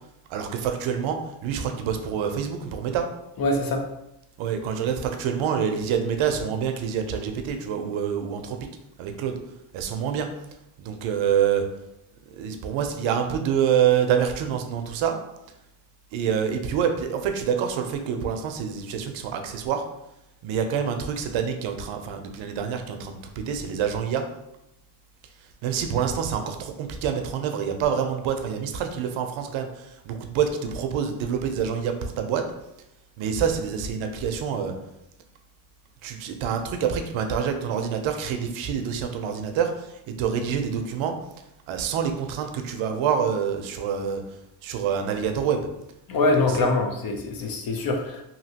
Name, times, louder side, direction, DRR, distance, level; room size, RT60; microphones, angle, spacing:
voice 1, 0.3-3.1 4.4-8.6 9.0-9.4 9.7-10.3 10.8-11.7 12.4-15.2 16.1-19.8 20.4-24.3 25.6-32.5 33.2-34.7 36.0-41.2 41.7-44.2 44.6-45.7 46.3-46.7, right 7 dB, 70° right, 6 dB, 0.6 m, -26 dB
voice 2, 3.4-3.9 46.1-48.2, left 2 dB, 45° left, 3 dB, 0.7 m, -24 dB
2.9 x 2.7 x 2.8 m, 0.84 s
supercardioid pair, 85°, 50 cm